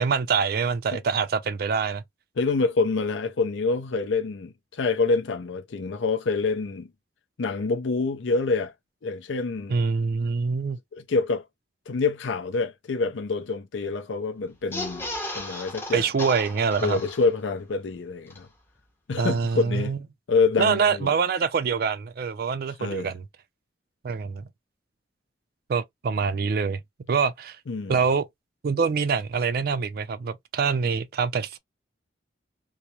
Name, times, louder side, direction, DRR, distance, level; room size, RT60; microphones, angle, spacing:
voice 1, 0.0-2.0 9.7-10.8 15.9-17.0 19.2-20.0 20.6-23.2 24.0-24.5 25.7-26.8 27.1-27.6 27.9-28.3 28.6-31.6, right 5 dB, 55° right, 0.4 m, -25 dB
voice 2, 2.4-6.9 7.4-8.7 9.0-9.8 10.9-11.4 11.9-15.1 15.3-16.1 16.8-18.5 19.1-19.9 20.3-21.1 22.8-23.1 27.7-28.0, left 4 dB, 85° left, 0.5 m, -26 dB
sound 1, 14.6-17.6 17.9-18.0 18.3-18.4, left 1 dB, 15° left, 0.6 m, -35 dB
2.3 x 2.0 x 2.8 m
head